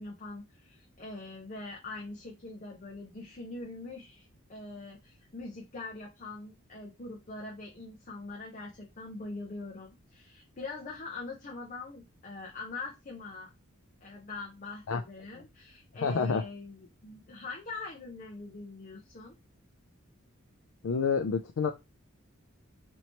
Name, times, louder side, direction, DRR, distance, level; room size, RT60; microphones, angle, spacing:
voice 1, 0.0-13.5 14.0-19.3, left 3 dB, 40° left, -2 dB, 0.7 m, -43 dB
voice 2, 16.0-16.4 20.8-21.7, left 5 dB, 75° left, 5 dB, 0.4 m, -28 dB
4.4 x 2.9 x 2.9 m, 0.23 s
head